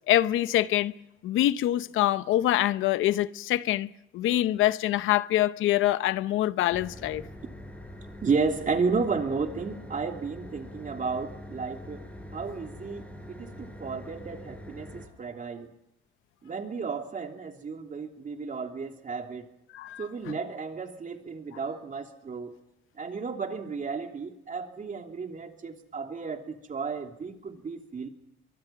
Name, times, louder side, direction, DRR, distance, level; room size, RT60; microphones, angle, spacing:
voice 1, 0.1-0.9 1.2-7.2 19.7-20.3, left 14 dB, 85° left, 0.8 m, -25 dB
sound 1, 6.7-15.1, left 1 dB, 5° left, 6.6 m, -44 dB
voice 2, 8.2-12.0 12.3-15.7 16.4-19.5 20.0-22.6 23.0-28.1, right 4 dB, 40° right, 3.1 m, -33 dB
24.0 x 23.5 x 5.9 m
cardioid pair, 90°, 20 cm